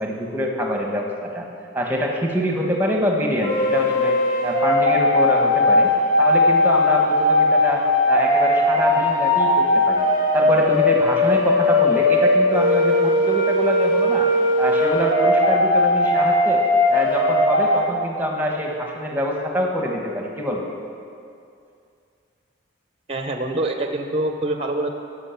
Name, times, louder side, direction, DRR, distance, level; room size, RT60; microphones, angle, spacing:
voice 1, 0.0-1.5 1.7-4.2 4.4-5.9 6.2-10.1 10.3-14.3 14.6-16.6 16.9-20.6, equal, 10° right, 0 dB, 1.0 m, -25 dB
sound 1, 3.4-17.8, left 1 dB, 40° left, 1.6 m, -18 dB
voice 2, 23.1-24.9, right 2 dB, 30° right, 5 dB, 0.6 m, -25 dB
11.0 x 6.1 x 5.7 m, 2.4 s
head